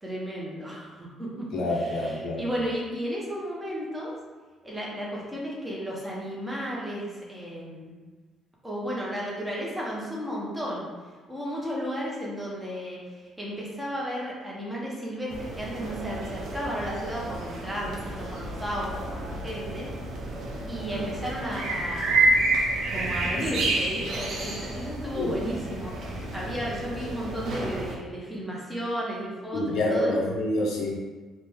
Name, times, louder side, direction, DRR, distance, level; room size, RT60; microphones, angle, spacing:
voice 1, 0.0-4.1 4.6-7.9 8.6-10.9 11.3-19.9 20.6-22.3 22.9-30.3, equal, 5° right, -5 dB, 0.6 m, -34 dB
voice 2, 1.5-2.5 25.1-25.3 29.5-30.9, left 1 dB, 60° left, -2 dB, 0.5 m, -27 dB
sound 1, 15.3-28.0, right 2 dB, 45° right, 0.4 m, -30 dB
3.1 x 2.0 x 3.4 m, 1.3 s
cardioid pair, 165°, 0 cm